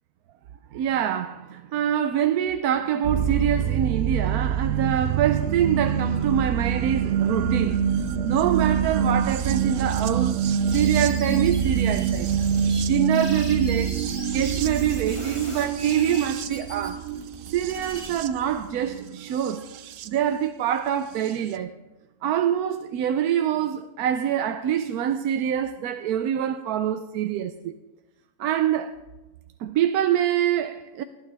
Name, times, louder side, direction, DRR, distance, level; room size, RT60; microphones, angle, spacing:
voice 1, 0.7-12.3 12.9-17.0 17.5-19.6 20.0-21.7 22.2-27.8 28.4-29.0 29.6-31.0, right 9 dB, 90° right, 1.1 m, -25 dB
sound 1, 3.0-20.1 21.3-21.4, right 7 dB, 65° right, 0.9 m, -26 dB
sound 2, 10.7-12.8 13.1-18.1, right 1 dB, 20° right, 2.7 m, -40 dB
18.5 x 11.5 x 3.4 m
omnidirectional pair, 1.6 m